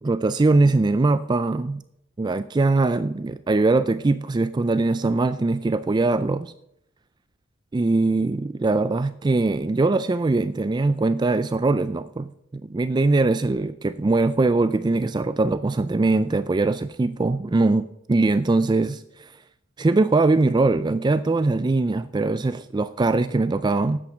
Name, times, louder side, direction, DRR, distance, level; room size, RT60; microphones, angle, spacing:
voice 1, 0.0-1.8 2.2-6.5 7.7-12.3 12.6-19.3 19.8-24.0, right 3 dB, 20° right, 13 dB, 0.3 m, -21 dB
13.0 x 8.6 x 4.9 m, 0.75 s
head